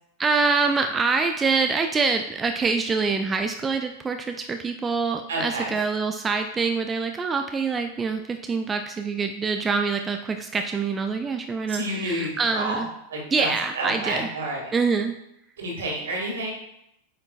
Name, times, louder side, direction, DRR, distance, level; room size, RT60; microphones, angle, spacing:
voice 1, 0.2-12.9 13.3-14.3 14.7-15.2, right 4 dB, 15° right, 6 dB, 0.4 m, -25 dB
voice 2, 5.3-5.7 11.7-12.8 13.1-14.7 15.6-16.5, right 1 dB, 65° right, -2 dB, 2.0 m, -29 dB
8.3 x 5.2 x 2.4 m, 0.81 s
figure-of-eight pair, 90°, 0 cm